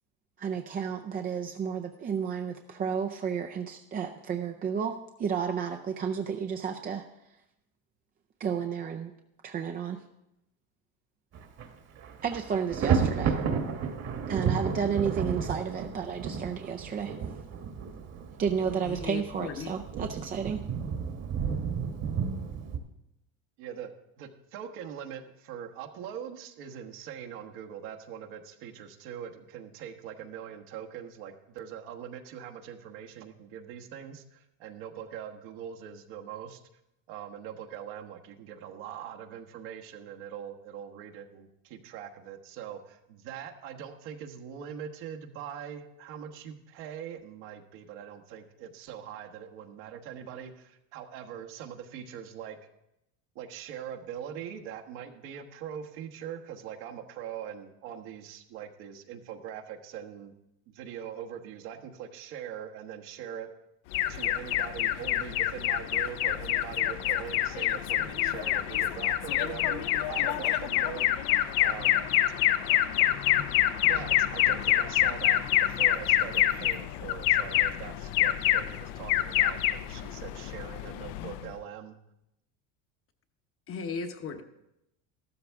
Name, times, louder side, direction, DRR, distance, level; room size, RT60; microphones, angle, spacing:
voice 1, 0.4-7.1 8.4-9.1 9.4-10.0 12.2-13.4 14.3-17.1 18.4-20.7, right 7 dB, 25° right, 5 dB, 0.5 m, -32 dB
Thunder, 11.3-11.7 12.0-22.8, right 6 dB, 40° right, 1.3 m, -32 dB
voice 2, 18.8-19.7 83.7-84.4, left 5 dB, 35° left, 7 dB, 0.9 m, -36 dB
voice 3, 23.6-23.9 24.2-36.6 37.1-52.6 53.3-60.3 60.7-63.5 64.1-71.1 71.6-72.1 73.3-73.5 73.8-82.0, right 9 dB, 70° right, 3 dB, 1.4 m, -42 dB
Alarm, 63.9-81.5, left 13 dB, 65° left, 0.7 m, -27 dB
13.5 x 13.0 x 3.6 m, 0.88 s
cardioid pair, 135°, 40 cm